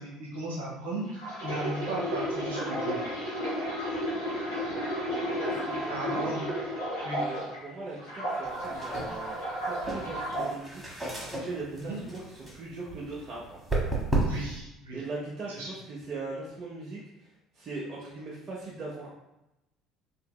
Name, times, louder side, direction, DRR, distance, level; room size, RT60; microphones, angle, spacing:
voice 1, 0.0-3.0 5.9-6.4 7.0-7.2 11.9-12.0 14.2-15.0 15.5-15.7, right 1 dB, 80° right, -4 dB, 0.8 m, -36 dB
sound 1, 1.1-7.6 8.0-10.5 11.1-11.3, equal, 85° left, 1.3 m, -33 dB
voice 2, 5.4-6.3 7.1-10.8 11.1-13.6 14.9-19.1, right 3 dB, 40° right, -4 dB, 0.5 m, -40 dB
sound 2, 8.5-14.6, right 2 dB, 5° right, 0.9 m, -34 dB
2.7 x 2.7 x 2.2 m, 0.93 s
hypercardioid pair, 60°, 0 cm